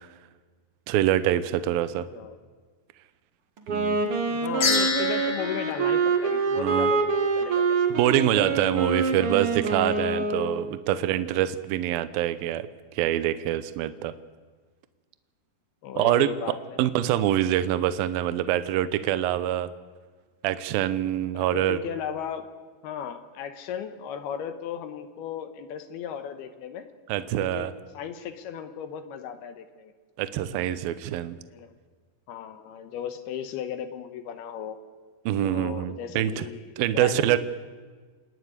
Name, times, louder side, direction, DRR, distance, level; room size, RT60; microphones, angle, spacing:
voice 1, 0.9-2.1 3.7-4.0 6.6-6.9 8.0-12.7 12.9-14.1 16.0-16.3 16.8-19.7 20.4-21.8 27.1-27.7 30.2-31.4 35.3-36.4 36.8-37.4, right 12 dB, 75° right, 13 dB, 2.3 m, -25 dB
voice 2, 1.9-2.4 4.3-8.0 8.8-9.0 15.8-16.8 21.3-22.5 22.8-26.9 27.3-29.9 31.5-31.7 32.3-34.8 35.4-37.4, left 8 dB, 75° left, 9 dB, 2.8 m, -36 dB
Wind instrument woodwind instrument, 3.6-10.7, right 4 dB, 50° right, 1.7 m, -26 dB
sound 1, 4.6-7.1, left 4 dB, 50° left, 2.2 m, -29 dB
28.0 x 10.0 x 9.7 m, 1.4 s
omnidirectional pair, 5.0 m